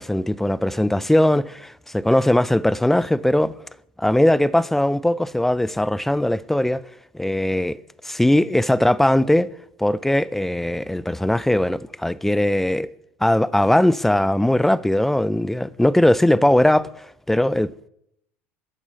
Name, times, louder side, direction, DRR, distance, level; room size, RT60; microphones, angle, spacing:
voice 1, 0.0-3.5 4.0-6.8 7.1-7.8 8.0-9.5 9.8-12.9 13.2-16.9 17.3-17.9, left 1 dB, 5° left, 0.3 m, -19 dB
11.0 x 4.4 x 5.6 m
hypercardioid pair, 80°, 7 cm